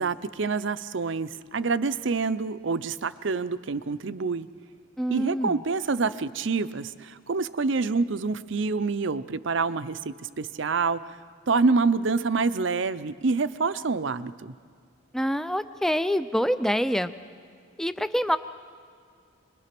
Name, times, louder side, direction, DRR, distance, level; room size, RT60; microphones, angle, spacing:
voice 1, 0.0-4.5 5.1-11.2 11.5-14.5, right 4 dB, 65° right, 15 dB, 0.6 m, -27 dB
voice 2, 5.0-5.6 15.1-17.1 17.8-18.4, equal, ahead, 12 dB, 0.5 m, -26 dB
25.0 x 21.0 x 6.0 m, 2.2 s
head